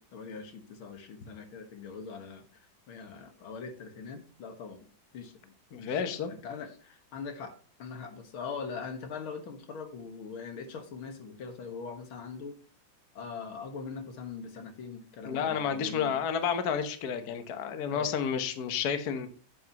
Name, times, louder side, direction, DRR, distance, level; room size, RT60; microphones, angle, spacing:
voice 1, 0.0-12.6 13.2-16.1 17.9-18.1, left 5 dB, 90° left, 6 dB, 2.3 m, -42 dB
voice 2, 5.7-6.3 15.2-19.3, left 7 dB, 55° left, 9 dB, 1.5 m, -31 dB
10.0 x 8.6 x 3.0 m, 0.41 s
omnidirectional pair, 2.2 m